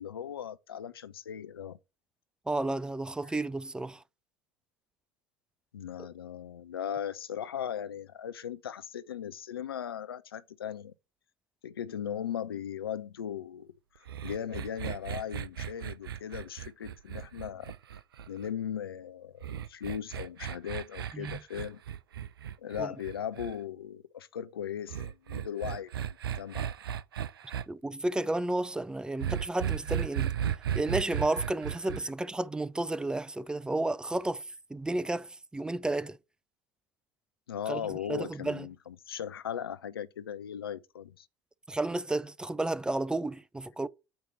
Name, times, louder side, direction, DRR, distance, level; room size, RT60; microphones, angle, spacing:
voice 1, 0.0-1.8 3.2-3.3 5.7-10.9 11.6-17.7 18.3-21.8 22.6-25.9 26.3-26.7 37.5-41.3, left 9 dB, 75° left, 0.5 m, -38 dB
voice 2, 2.5-4.0 21.1-21.4 22.8-22.9 27.7-30.3 30.7-34.4 34.7-36.2 37.7-37.8 38.1-38.7 41.7-43.9, right 2 dB, 5° right, 0.3 m, -32 dB
sound 1, 14.1-18.5 19.4-23.5 24.9-27.6 29.2-32.0, right 9 dB, 75° right, 0.4 m, -35 dB
8.6 x 2.9 x 5.6 m
figure-of-eight pair, 70°, 12 cm